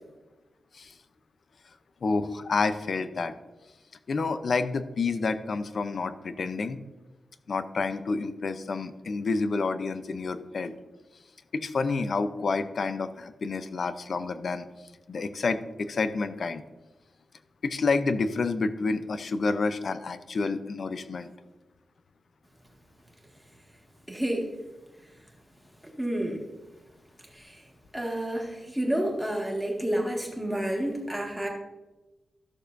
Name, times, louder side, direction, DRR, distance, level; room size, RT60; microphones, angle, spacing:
voice 1, 2.0-3.3 4.1-6.8 7.5-10.7 11.5-14.7 15.1-16.6 17.6-21.3, left 4 dB, 50° left, 11 dB, 0.6 m, -29 dB
voice 2, 24.1-24.5 26.0-26.4 27.4-27.6 27.9-31.5, right 1 dB, 5° right, -1 dB, 1.8 m, -29 dB
14.5 x 6.5 x 2.6 m, 1.1 s
wide cardioid pair, 130°, 0 cm